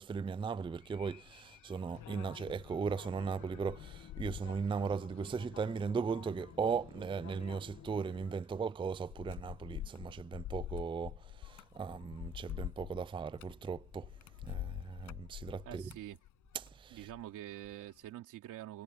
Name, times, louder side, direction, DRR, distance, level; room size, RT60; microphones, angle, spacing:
voice 1, 0.0-14.1 14.4-15.9 16.8-17.0, right 5 dB, 15° right, 0.4 m, -37 dB
sound 1, 0.6-17.3 17.6-18.1, left 15 dB, 90° left, 6.8 m, -47 dB
sound 2, 1.9-8.4, left 9 dB, 60° left, 1.7 m, -53 dB
voice 2, 15.6-16.2 16.9-18.8, right 14 dB, 90° right, 3.4 m, -46 dB
cardioid pair, 90°, 30 cm